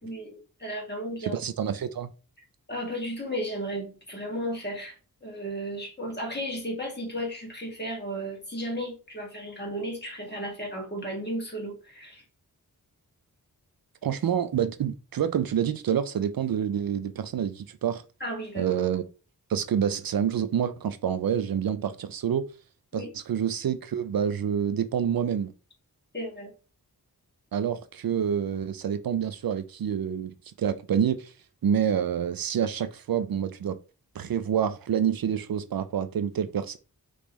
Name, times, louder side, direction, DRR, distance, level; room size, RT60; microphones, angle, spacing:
voice 1, 0.0-1.4 2.7-12.2 18.2-18.8 22.9-23.1 26.1-26.5, equal, 30° left, 2.0 m, -34 dB
voice 2, 1.2-2.1 14.0-18.0 18.5-19.0 19.5-22.5 22.9-25.5 27.5-31.3 31.6-33.8 34.2-36.8, right 8 dB, 70° right, 0.5 m, -27 dB
5.2 x 3.2 x 3.1 m
wide cardioid pair, 80°, 37 cm